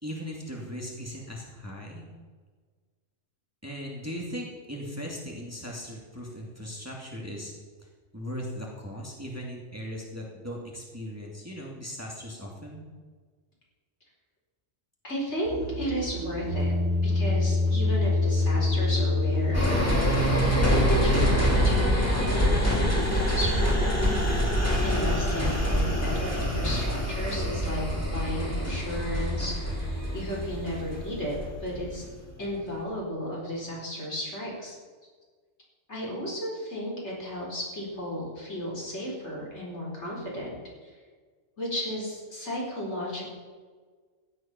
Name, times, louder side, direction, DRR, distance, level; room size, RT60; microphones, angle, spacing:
voice 1, 0.0-2.1 3.6-7.5 7.8-7.9 8.1-12.8, equal, 10° right, -2 dB, 2.6 m, -38 dB
voice 2, 15.0-16.7 17.0-19.6 20.5-23.9 24.8-32.1 32.4-34.8 35.9-40.5 40.8-40.9 41.6-43.3, equal, 60° left, -3 dB, 4.9 m, -34 dB
sound 1, 15.4-21.7, left 1 dB, 70° right, 5.3 m, -26 dB
sound 2, 19.5-32.1 32.5-32.6, left 1 dB, 10° left, 3.4 m, -26 dB
15.5 x 10.5 x 6.1 m, 1.5 s
omnidirectional pair, 1.3 m